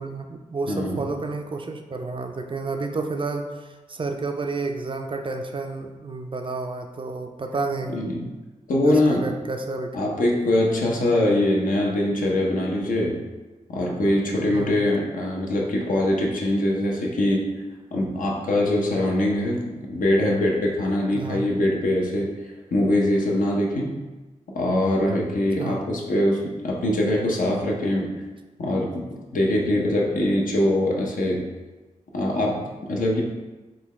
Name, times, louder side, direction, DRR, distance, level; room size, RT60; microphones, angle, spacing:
voice 1, 0.0-8.0 8.8-10.0 14.5-14.7 21.1-21.6 25.5-25.8, right 3 dB, 40° right, 5 dB, 0.4 m, -31 dB
voice 2, 0.7-1.0 7.9-8.2 8.7-9.3 9.9-13.2 13.7-17.5 17.9-19.6 19.9-22.3 22.7-24.0 24.5-28.1 28.6-29.0 29.3-31.4 32.1-33.2, left 1 dB, 70° left, -1 dB, 0.7 m, -23 dB
3.8 x 2.2 x 3.2 m, 1.2 s
cardioid pair, 40°, 14 cm